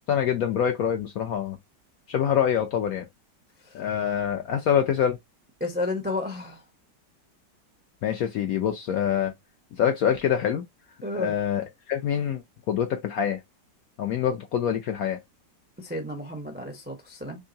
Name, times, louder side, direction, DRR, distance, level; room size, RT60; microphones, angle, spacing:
voice 1, 0.1-1.6 2.1-3.1 3.7-5.2 8.0-9.3 9.8-10.6 11.1-12.4 12.7-13.4 14.0-15.2, left 9 dB, 70° left, 0.9 m, -25 dB
voice 2, 5.6-6.6 11.0-11.3 15.8-17.4, left 2 dB, 15° right, 0.3 m, -32 dB
3.7 x 3.2 x 2.7 m
omnidirectional pair, 2.0 m